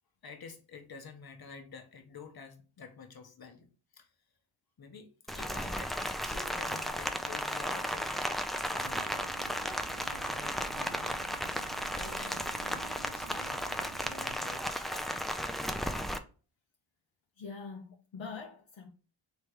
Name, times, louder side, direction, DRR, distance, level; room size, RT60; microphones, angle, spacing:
voice 1, 0.2-3.7 3.9-4.1 4.8-5.9 6.2-8.4 8.7-9.1 10.1-11.4 11.9-15.3, left 5 dB, 50° left, 1.0 m, -50 dB
Rain, 5.3-16.2, equal, ahead, 0.4 m, -35 dB
sound 1, 8.8-14.4, right 8 dB, 85° right, 0.6 m, -50 dB
voice 2, 17.4-18.9, left 5 dB, 70° left, 0.8 m, -44 dB
3.3 x 3.2 x 4.7 m
cardioid pair, 65°, 48 cm